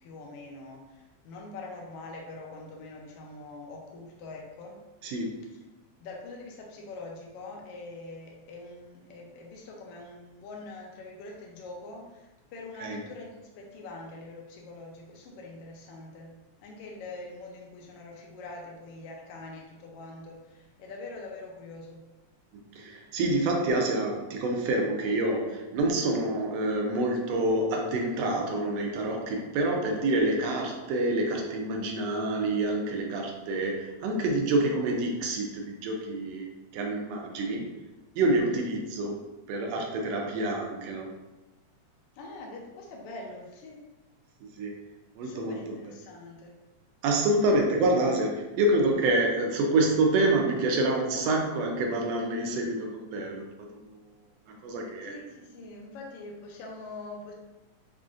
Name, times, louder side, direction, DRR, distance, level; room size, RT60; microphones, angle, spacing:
voice 1, 0.0-4.8 6.0-22.0 38.2-38.6 42.1-43.8 45.2-46.6 55.0-57.3, left 2 dB, 80° left, -1 dB, 1.4 m, -44 dB
voice 2, 5.0-5.5 12.8-13.0 22.7-37.7 38.2-41.2 44.6-44.8 45.2-45.8 47.0-53.9 54.5-55.1, right 2 dB, 80° right, 1 dB, 1.5 m, -27 dB
5.6 x 2.5 x 2.4 m, 1.0 s
omnidirectional pair, 3.3 m